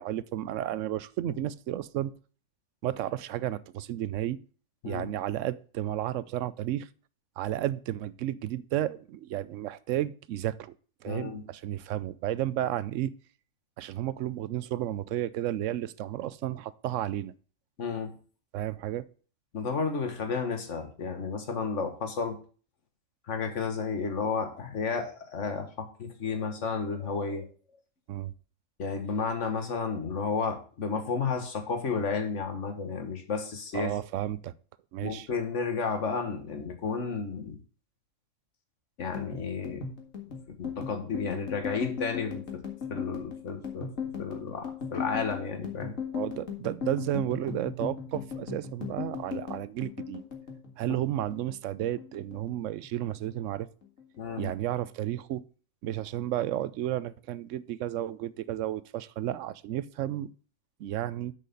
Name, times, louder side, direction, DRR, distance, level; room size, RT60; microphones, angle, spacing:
voice 1, 0.0-2.1 2.8-4.4 4.9-6.9 7.4-10.7 11.0-13.1 13.8-17.3 18.5-19.0 28.1-28.3 33.7-34.5 34.9-35.3 46.1-50.2 50.8-53.7 54.4-55.4 55.8-60.3 60.8-61.3, right 13 dB, 80° right, 18 dB, 0.9 m, -32 dB
voice 2, 11.1-11.4 17.8-18.1 19.5-22.4 23.3-27.5 28.8-33.9 35.0-37.6 39.0-39.9 40.3-42.6 42.9-46.0 54.2-54.5, left 5 dB, 70° left, 6 dB, 1.8 m, -32 dB
sound 1, 39.0-51.6 51.8-52.9 53.1-53.5 53.8-54.5, left 6 dB, 85° left, 2.2 m, -37 dB
7.5 x 6.5 x 5.3 m, 0.40 s
omnidirectional pair, 1.3 m